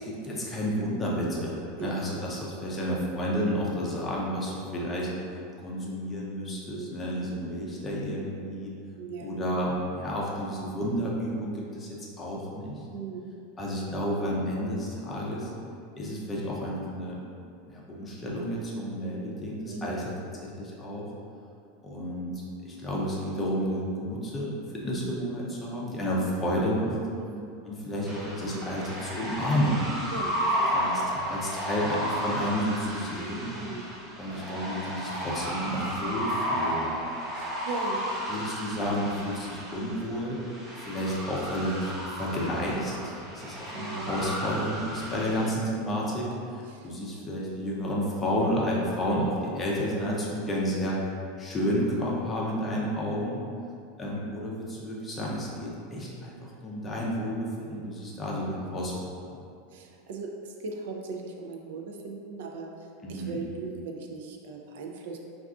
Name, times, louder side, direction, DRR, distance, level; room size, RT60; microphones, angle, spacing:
voice 1, 0.3-5.1 5.6-8.7 9.2-11.9 12.2-12.9 13.6-15.5 16.0-17.2 17.7-20.1 20.4-21.1 21.8-27.0 27.6-29.9 30.7-33.5 34.2-36.9 38.3-40.4 40.8-51.0 51.4-53.4 54.0-59.4 63.0-63.4, equal, 15° left, -4 dB, 0.5 m, -31 dB
voice 2, 6.7-7.2 9.0-9.4 12.9-13.3 19.7-20.0 27.2-27.5 30.1-30.9 33.5-33.9 37.3-38.2 38.8-39.1 43.7-44.6 46.7-46.9 52.6-52.7 59.7-62.7 63.1-65.2, right 4 dB, 75° right, 1 dB, 0.3 m, -39 dB
sound 1, 28.0-45.5, equal, 15° right, 0.9 m, -33 dB
2.4 x 2.3 x 3.6 m, 2.5 s
supercardioid pair, 155°, 0 cm